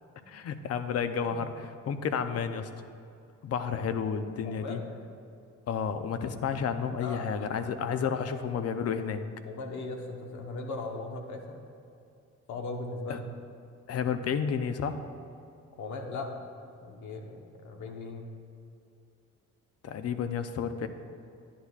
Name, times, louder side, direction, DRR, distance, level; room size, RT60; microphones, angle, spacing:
voice 1, 0.3-2.7 3.4-4.8 5.7-9.2 13.1-13.2 13.9-15.0 19.8-20.9, left 7 dB, 55° left, 9 dB, 0.6 m, -31 dB
voice 2, 4.4-4.9 7.0-8.2 9.4-11.6 12.5-13.2 15.8-16.5 16.8-18.3, left 3 dB, 75° left, 3 dB, 1.1 m, -39 dB
10.0 x 9.9 x 2.4 m, 2.6 s
cardioid pair, 90°, 30 cm